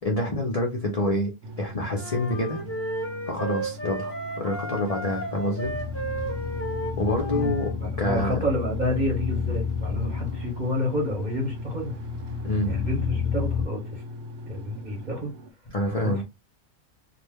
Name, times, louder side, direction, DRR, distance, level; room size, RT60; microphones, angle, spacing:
voice 1, 0.0-1.3 1.6-2.6 3.3-5.7 7.0-7.7 8.0-8.4 12.4-12.8 15.7-16.2, left 1 dB, 50° left, 0.4 m, -27 dB
sound 1, 1.4-15.5, equal, 80° right, 1.1 m, -40 dB
sound 2, 1.9-7.7, right 2 dB, 10° left, 0.7 m, -33 dB
sound 3, 5.6-13.6, left 7 dB, 20° right, 0.4 m, -31 dB
voice 2, 7.3-12.0 12.6-14.0 14.5-15.3 16.0-16.2, left 1 dB, 40° right, 0.8 m, -29 dB
2.5 x 2.1 x 3.3 m
omnidirectional pair, 1.5 m